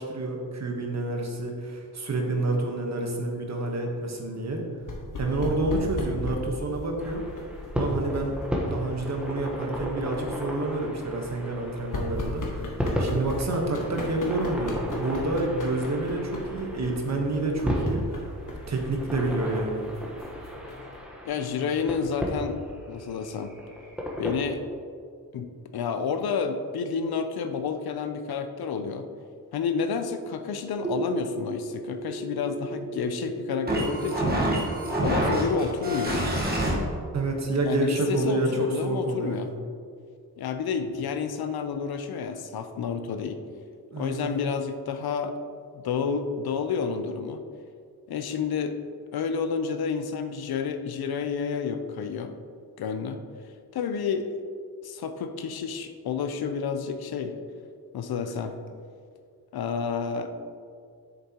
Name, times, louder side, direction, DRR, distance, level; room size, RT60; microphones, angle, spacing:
voice 1, 0.0-4.7 5.2-7.2 7.7-8.4 8.7-12.7 13.0-18.2 18.7-19.8 37.1-39.4 43.9-44.3, right 2 dB, 45° right, 2 dB, 1.2 m, -28 dB
sound 1, 4.8-21.0, left 2 dB, 60° left, 1.4 m, -38 dB
sound 2, 7.0-24.4, equal, 5° right, 1.1 m, -34 dB
voice 2, 21.2-22.6 22.9-23.5 24.2-24.6 25.3-29.1 29.5-34.4 35.0-36.3 37.7-39.5 40.4-43.4 44.0-45.4 45.7-47.4 48.1-48.8 49.1-52.4 52.8-53.2 53.7-54.3 54.8-57.4 57.9-58.5 59.5-60.3, left 6 dB, 85° left, 8 dB, 0.6 m, -30 dB
sound 3, 30.8-36.7, right 1 dB, 25° right, 1.3 m, -28 dB
8.0 x 6.6 x 2.9 m, 2.3 s
wide cardioid pair, 100°, 36 cm